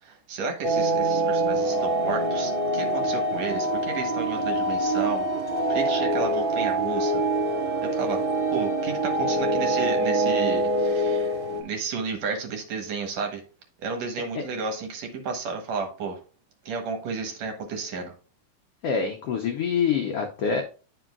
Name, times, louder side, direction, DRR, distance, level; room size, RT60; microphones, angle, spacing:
voice 1, 0.0-5.3 5.7-7.2 7.8-8.2 8.5-11.3 11.6-13.4 13.8-16.2 16.6-18.1, right 4 dB, 65° right, 3 dB, 2.3 m, -32 dB
sound 1, 0.6-11.6, right 1 dB, 45° right, 2.3 m, -25 dB
voice 2, 18.8-20.6, left 6 dB, 85° left, 4 dB, 1.3 m, -25 dB
10.0 x 4.9 x 2.3 m, 0.38 s
omnidirectional pair, 3.6 m